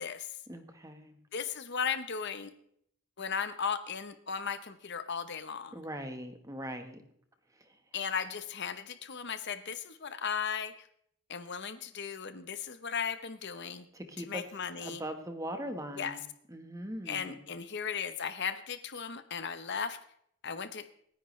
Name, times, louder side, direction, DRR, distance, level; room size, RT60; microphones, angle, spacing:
voice 1, 0.5-1.2 5.7-7.0 7.5-7.8 13.9-14.5 14.8-17.4, equal, 15° right, 7 dB, 1.2 m, -41 dB
voice 2, 1.3-2.5 3.2-5.7 7.9-10.7 11.3-13.8 14.3-15.0 16.0-16.1 17.1-20.0 20.4-20.8, left 6 dB, 50° left, 11 dB, 0.9 m, -36 dB
27.0 x 10.5 x 3.2 m, 0.69 s
head